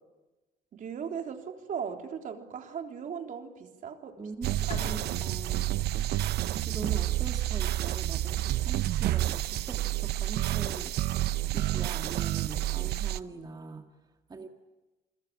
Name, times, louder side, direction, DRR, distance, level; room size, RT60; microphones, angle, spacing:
voice 1, 0.7-4.2 4.5-5.0, right 7 dB, 50° right, 3 dB, 3.7 m, -38 dB
voice 2, 4.1-6.1 6.7-11.0 11.5-13.9 14.3-14.5, right 4 dB, 25° right, 4 dB, 2.2 m, -42 dB
sound 1, 4.4-13.2, right 14 dB, 75° right, 0.8 m, -29 dB
Bowed string instrument, 4.7-7.7, left 8 dB, 40° left, 1.1 m, -47 dB
28.5 x 21.5 x 8.8 m, 1.1 s
cardioid pair, 110°, 17 cm